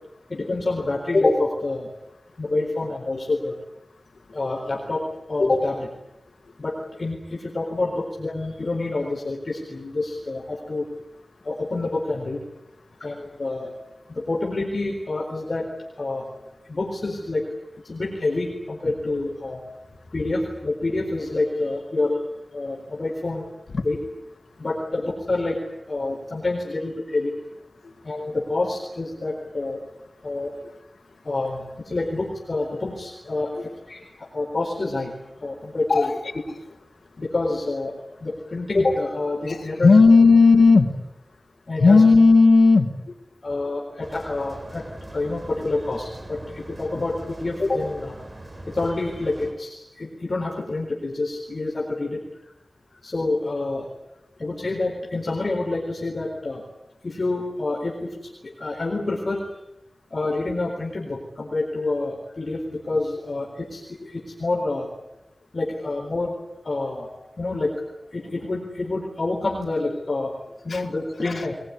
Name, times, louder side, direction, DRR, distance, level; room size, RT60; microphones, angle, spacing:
voice 1, 0.3-1.9 2.4-3.6 4.3-5.0 5.3-5.9 6.6-10.8 11.4-12.4 13.0-13.7 14.1-15.7 16.0-16.2 16.7-17.4 17.8-19.6 20.1-22.2 22.5-23.5 23.8-24.0 24.6-25.6 25.9-27.3 28.0-29.8 30.2-30.5 31.2-34.0 34.3-35.1 35.4-36.1 37.2-37.9 38.2-39.9 41.7-42.0 43.4-48.2 48.7-52.2 53.0-53.9 54.4-56.6 57.0-59.4 60.1-64.9 65.5-66.3 66.6-67.1 67.4-67.7 68.1-70.3 70.6-71.5, left 2 dB, 55° left, 1 dB, 4.2 m, -27 dB
voice 2, 39.5-40.9 41.8-42.9 70.7-70.8 71.2-71.5, left 4 dB, 90° left, 5 dB, 2.2 m, -14 dB
sound 1, 44.0-49.5, right 1 dB, 30° right, 3.8 m, -41 dB
22.5 x 21.0 x 9.8 m, 0.94 s
wide cardioid pair, 80°, 0 cm